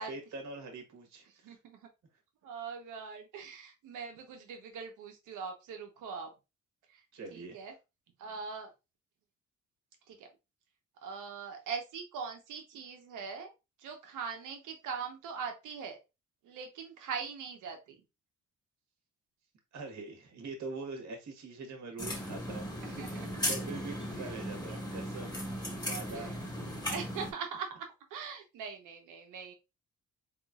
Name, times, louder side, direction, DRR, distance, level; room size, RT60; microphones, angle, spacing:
voice 1, 0.0-1.6 7.1-7.6 19.7-22.7 23.1-25.4 25.8-26.3, right 3 dB, 65° right, 1.5 m, -43 dB
voice 2, 1.3-1.9 2.4-6.3 6.9-7.0 7.3-7.7 8.2-8.7 10.1-10.3 11.0-13.5 13.8-16.0 16.4-18.0 22.8-23.3 24.1-24.8 26.1-26.3 26.8-29.5, right 6 dB, 85° right, 1.2 m, -42 dB
sound 1, 22.0-27.3, equal, 15° left, 1.6 m, -37 dB
4.0 x 3.7 x 2.4 m
cardioid pair, 90°, 30 cm